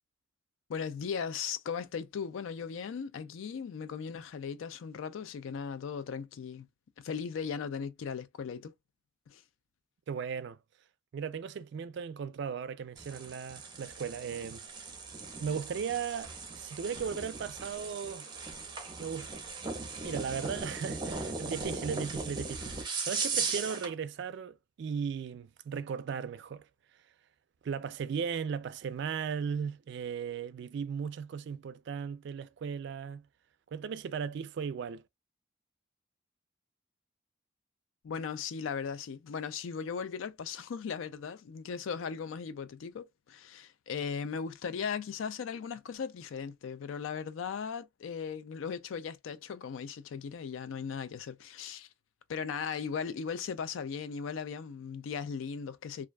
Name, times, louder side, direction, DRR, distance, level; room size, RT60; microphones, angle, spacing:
voice 1, 0.7-6.7 7.0-8.7 9.3-9.4 38.0-51.9 52.3-56.1, left 6 dB, 85° left, 0.4 m, -37 dB
voice 2, 10.1-10.6 11.1-14.7 15.4-18.3 19.0-19.3 20.0-26.7 27.6-33.3 33.7-35.0, right 6 dB, 60° right, 0.3 m, -37 dB
sound 1, 13.0-23.9, right 4 dB, 25° right, 0.6 m, -38 dB
2.4 x 2.2 x 2.3 m
head